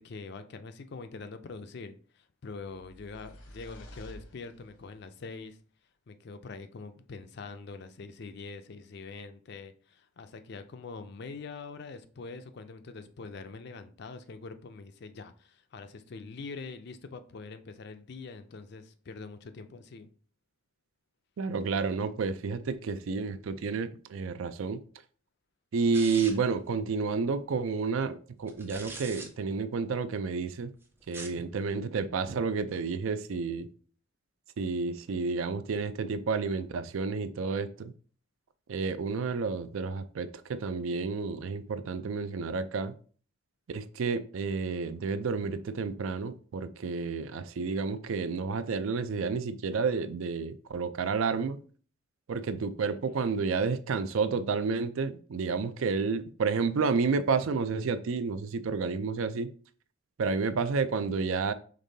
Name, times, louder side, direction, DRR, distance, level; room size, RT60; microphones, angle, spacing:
voice 1, 0.0-5.6 6.1-20.1 53.2-53.3, left 4 dB, 50° left, 0.4 m, -44 dB
sound 1, 2.6-5.0, equal, 80° left, 1.0 m, -50 dB
voice 2, 21.4-24.8 25.7-30.7 31.1-33.7 34.6-37.9 38.7-42.9 43.7-51.6 52.3-59.5 60.2-61.5, right 4 dB, 70° right, 0.4 m, -30 dB
sound 2, 25.9-26.6 28.5-29.3 31.0-31.4, right 2 dB, 10° right, 0.4 m, -42 dB
5.2 x 3.6 x 2.7 m
head